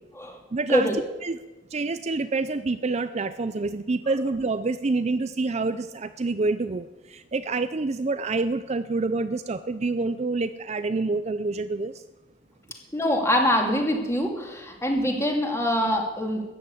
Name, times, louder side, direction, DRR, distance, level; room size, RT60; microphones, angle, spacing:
voice 1, 0.5-0.9 1.2-1.4 1.7-11.9, right 3 dB, 35° right, 11 dB, 0.5 m, -27 dB
voice 2, 12.9-16.4, equal, 15° left, 2 dB, 2.4 m, -24 dB
14.0 x 10.0 x 8.3 m, 1.1 s
head